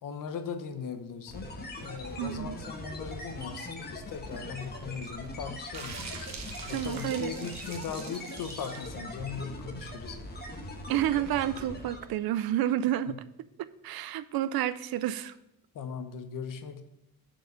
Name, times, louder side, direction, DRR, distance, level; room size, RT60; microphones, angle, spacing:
voice 1, 0.0-1.5 1.8-6.0 6.7-10.2 15.7-16.8, left 6 dB, 60° left, 8 dB, 0.9 m, -39 dB
sound 1, 1.3-12.2, left 1 dB, 25° left, 1.2 m, -41 dB
voice 2, 2.2-2.6 6.7-7.3 10.9-13.2 13.8-15.3, right 12 dB, 80° right, 15 dB, 0.5 m, -30 dB
sound 2, 5.7-9.0, right 5 dB, 50° right, 1.0 m, -44 dB
6.6 x 4.7 x 6.4 m, 0.88 s
cardioid pair, 155°, 36 cm